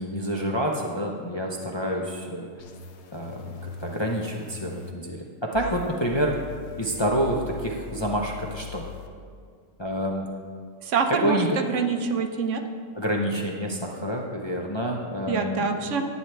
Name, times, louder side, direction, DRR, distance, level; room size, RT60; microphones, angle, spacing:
voice 1, 0.0-2.5 3.1-6.3 6.8-8.8 9.8-10.3 11.1-11.6 13.0-16.0, equal, 30° left, -1 dB, 0.5 m, -28 dB
sound 1, 2.6-4.9 5.5-9.1, left 6 dB, 60° left, 1.0 m, -41 dB
voice 2, 10.8-12.6 15.3-16.0, right 5 dB, 70° right, 6 dB, 1.0 m, -26 dB
11.0 x 8.9 x 3.3 m, 2.1 s
omnidirectional pair, 1.4 m